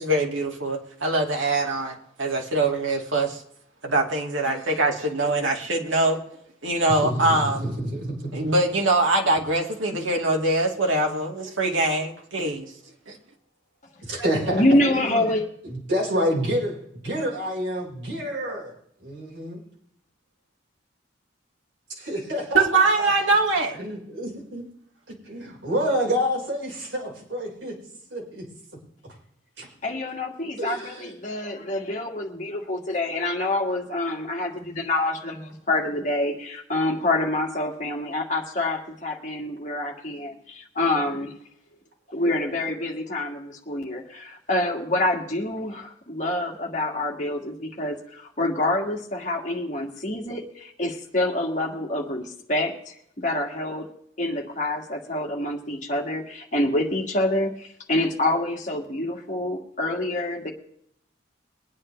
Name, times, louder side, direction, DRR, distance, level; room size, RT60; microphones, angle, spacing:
voice 1, 0.0-3.4 3.8-6.2 6.6-7.7 8.3-12.7 13.1-13.2 22.5-23.8, right 2 dB, 85° right, 1 dB, 2.1 m, -23 dB
voice 2, 6.9-8.5 14.0-14.6 14.9-15.3 15.6-18.7 19.0-19.6 22.0-23.3 23.7-24.6 25.1-27.8 28.1-28.4 29.0-29.1 29.6-29.7 30.6-31.3, equal, 70° right, -4 dB, 4.6 m, -28 dB
voice 3, 14.5-15.5 29.8-41.3 42.1-53.9 54.2-60.5, left 1 dB, 40° left, 0 dB, 2.0 m, -27 dB
22.5 x 9.8 x 3.2 m, 0.70 s
head